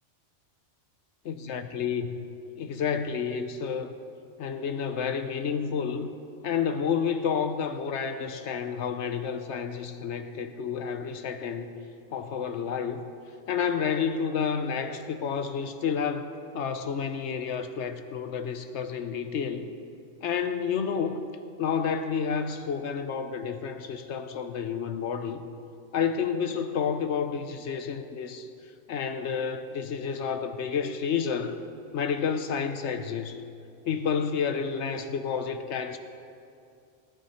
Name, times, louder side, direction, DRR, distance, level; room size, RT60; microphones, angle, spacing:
voice 1, 1.3-2.2 2.6-3.9 4.4-6.1 6.4-11.8 12.1-13.0 13.5-19.7 20.2-21.2 21.6-25.5 25.9-28.5 28.9-31.6 31.9-33.4 33.8-36.0, left 6 dB, 70° left, 9 dB, 1.0 m, -30 dB
18.5 x 11.0 x 4.2 m, 2.5 s
omnidirectional pair, 1.3 m